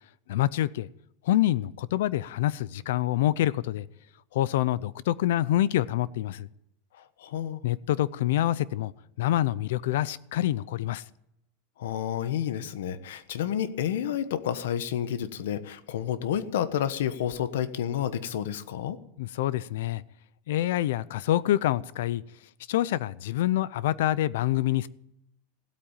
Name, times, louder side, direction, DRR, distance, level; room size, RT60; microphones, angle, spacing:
voice 1, 0.3-0.9 1.2-3.8 4.3-6.5 7.6-8.9 9.2-11.0 19.2-20.0 20.5-22.2 22.7-24.9, left 13 dB, 70° left, 0.6 m, -26 dB
voice 2, 7.2-7.6 11.8-19.0, left 10 dB, 85° left, 1.2 m, -30 dB
16.0 x 8.7 x 8.9 m
supercardioid pair, 180°, 0 cm